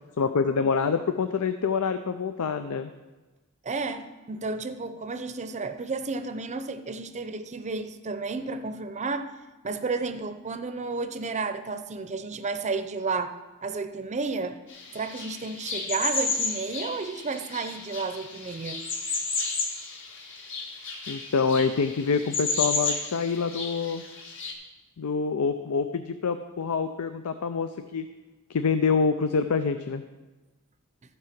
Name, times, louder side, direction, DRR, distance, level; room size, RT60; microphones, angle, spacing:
voice 1, 0.2-2.9 21.1-24.0 25.0-28.1 28.5-30.0, left 5 dB, 80° left, 9 dB, 0.5 m, -26 dB
voice 2, 3.6-9.3 9.6-13.3 13.6-14.6 14.9-18.8, right 4 dB, 30° right, 9 dB, 0.6 m, -32 dB
sound 1, 14.7-24.5, left 3 dB, 60° left, 1.7 m, -32 dB
14.0 x 4.7 x 5.9 m, 1.2 s
head